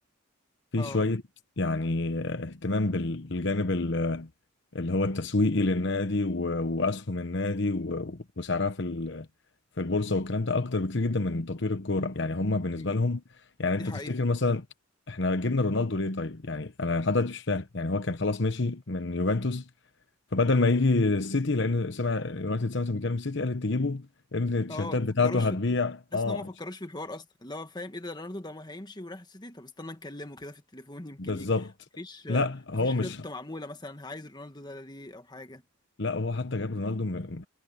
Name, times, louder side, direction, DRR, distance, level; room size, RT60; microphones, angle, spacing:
voice 1, 0.7-1.2 1.6-4.3 4.7-9.3 9.8-13.2 13.6-14.6 15.1-19.7 20.3-24.1 24.3-26.4 31.2-31.7 32.3-33.2 36.0-37.5, left 3 dB, 60° left, 1.1 m, -28 dB
voice 2, 13.8-14.2 24.7-25.6 26.1-31.5 32.0-32.5 32.8-35.6, left 2 dB, 20° left, 1.6 m, -40 dB
head